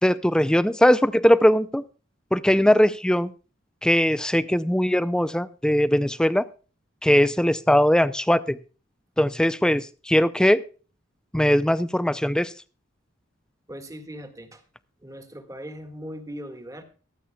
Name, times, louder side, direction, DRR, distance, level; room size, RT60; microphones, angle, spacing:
voice 1, 0.0-1.8 2.3-3.3 3.8-6.5 7.0-8.6 9.2-10.6 11.3-12.5, equal, 5° left, 15 dB, 0.5 m, -20 dB
voice 2, 13.7-14.6 15.0-16.8, equal, 15° right, 7 dB, 1.8 m, -39 dB
23.5 x 8.5 x 2.3 m, 0.37 s
head